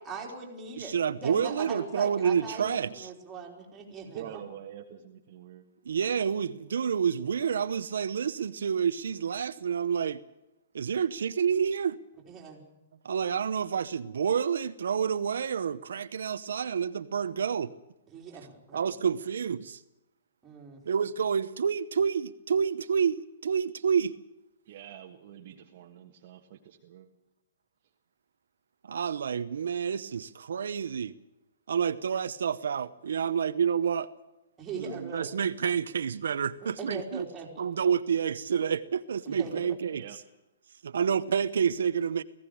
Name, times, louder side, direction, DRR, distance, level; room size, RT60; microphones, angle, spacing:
voice 1, 0.0-4.4 12.3-12.6 18.1-18.9 20.4-20.8 34.6-35.3 36.8-37.5 39.3-39.8, right 4 dB, 10° right, -1 dB, 3.8 m, -40 dB
voice 2, 0.8-3.1 5.8-10.2 10.7-11.9 13.0-17.7 18.7-19.8 20.9-24.1 28.8-31.1 31.7-34.1 35.0-37.3 37.6-40.0 40.8-42.2, right 7 dB, 80° right, 10 dB, 0.9 m, -29 dB
voice 3, 2.6-2.9 4.1-5.6 24.7-27.1 39.9-40.2, right 10 dB, 35° right, 2 dB, 1.5 m, -46 dB
19.0 x 16.0 x 8.7 m, 0.94 s
hypercardioid pair, 175°, 0 cm